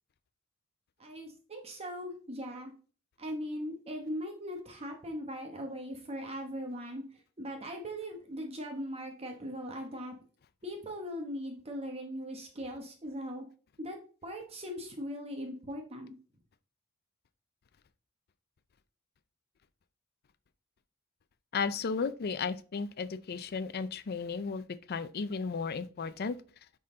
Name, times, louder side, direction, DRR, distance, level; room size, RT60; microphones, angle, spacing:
voice 1, 1.0-2.7 3.2-7.0 7.4-10.1 10.6-13.4 13.8-16.1, equal, 30° right, 1.1 m, -39 dB
voice 2, 21.5-26.4, left 5 dB, 45° left, 0.4 m, -34 dB
9.7 x 3.8 x 3.8 m
head